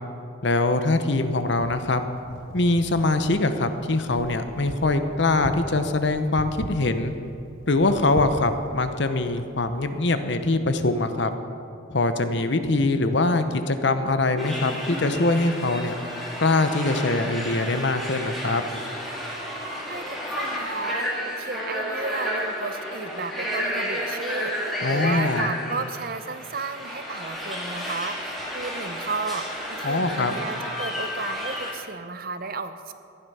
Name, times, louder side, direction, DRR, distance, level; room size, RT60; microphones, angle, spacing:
voice 1, 0.4-2.0 2.5-7.1 7.7-11.3 11.9-15.9 16.4-18.6 24.8-25.5 29.8-30.4, left 2 dB, 60° left, 9 dB, 0.8 m, -23 dB
Wind, 1.1-10.0, right 2 dB, 80° right, 0.8 m, -41 dB
sound 1, 14.4-31.7, equal, ahead, 2.4 m, -31 dB
voice 2, 19.9-32.9, right 4 dB, 45° right, 10 dB, 0.6 m, -33 dB
15.0 x 11.0 x 5.6 m, 2.6 s
head